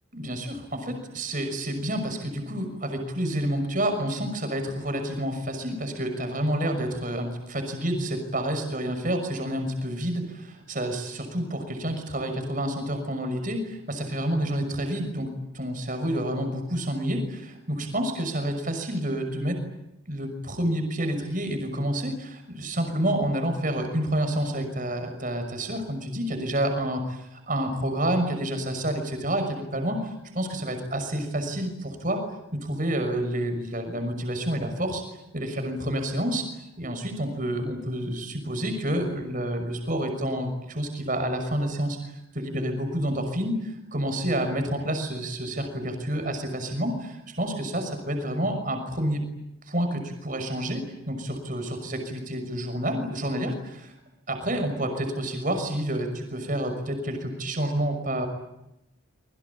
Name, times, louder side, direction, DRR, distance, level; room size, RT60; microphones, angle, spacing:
voice 1, 0.1-19.6 20.1-32.2 32.5-35.0 35.3-36.5 36.8-49.3 49.7-53.9 54.3-58.3, right 1 dB, 40° right, 6 dB, 6.0 m, -29 dB
27.0 x 23.5 x 8.6 m, 0.89 s
head